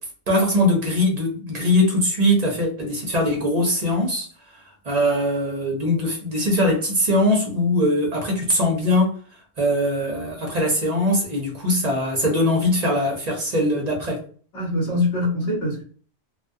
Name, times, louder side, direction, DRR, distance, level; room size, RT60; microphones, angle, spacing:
voice 1, 0.3-4.3 4.5-9.1 9.6-14.2, left 1 dB, 45° right, 0.6 m, -21 dB
voice 2, 14.5-15.8, left 2 dB, 65° left, 1.2 m, -23 dB
2.3 x 2.3 x 2.5 m
omnidirectional pair, 1.2 m